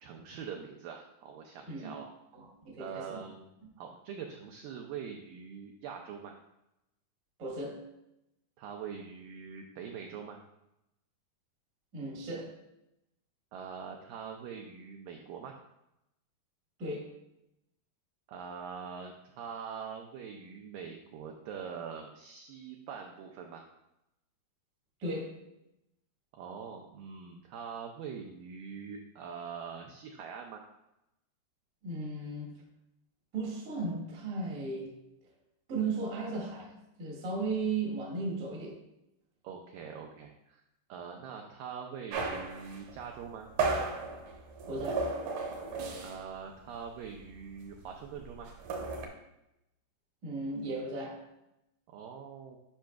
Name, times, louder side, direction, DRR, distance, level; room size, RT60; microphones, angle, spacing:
voice 1, 0.0-2.1 2.8-3.5 3.8-6.4 8.6-10.4 13.5-15.6 18.3-23.7 26.3-30.6 39.4-40.6 40.9-43.5 46.0-48.5 51.9-52.6, right 6 dB, 90° right, 2 dB, 1.9 m, -43 dB
voice 2, 2.3-3.2 7.4-7.8 11.9-12.5 16.8-17.1 25.0-25.3 31.8-32.5 33.3-35.0 35.7-38.8 44.7-45.1 50.2-51.2, right 3 dB, 45° right, -4 dB, 1.0 m, -36 dB
sound 1, 42.1-46.4 46.6-46.9 47.1-49.1, right 4 dB, 70° right, 2.0 m, -35 dB
10.0 x 5.7 x 2.3 m, 0.87 s
omnidirectional pair, 4.7 m